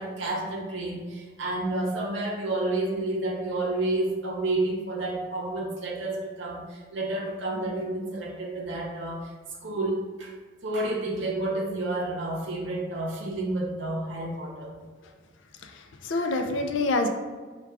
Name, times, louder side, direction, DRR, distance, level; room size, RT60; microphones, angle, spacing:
voice 1, 0.0-9.3 9.6-10.3 10.6-14.7, right 2 dB, 75° right, -2 dB, 0.6 m, -30 dB
voice 2, 15.6-17.1, left 2 dB, 85° left, 5 dB, 0.5 m, -27 dB
4.7 x 2.3 x 3.3 m, 1.5 s
head